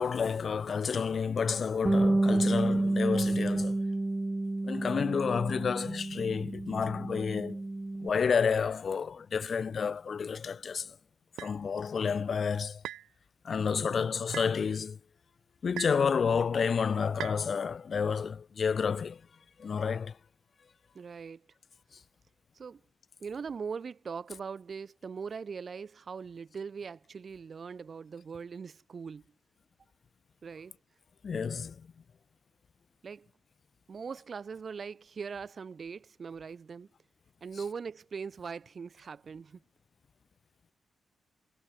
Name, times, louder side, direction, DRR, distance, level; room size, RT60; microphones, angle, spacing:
voice 1, 0.0-3.8 4.6-7.6 8.0-11.0 11.4-12.8 13.4-15.0 15.6-19.2 19.6-20.2 31.2-31.9, left 6 dB, 60° left, 0.6 m, -30 dB
Bass guitar, 1.9-8.1, right 2 dB, 25° right, 0.6 m, -29 dB
sound 1, 11.4-11.6 12.8-13.1 14.3-14.5 15.8-16.1 17.2-17.4, right 13 dB, 90° right, 1.6 m, -39 dB
voice 2, 13.7-14.1 20.9-21.5 22.5-22.8 23.2-29.2 30.4-30.8 33.0-33.3 33.9-36.9 37.4-39.6, right 5 dB, 55° right, 3.4 m, -41 dB
supercardioid pair, 50°, 0 cm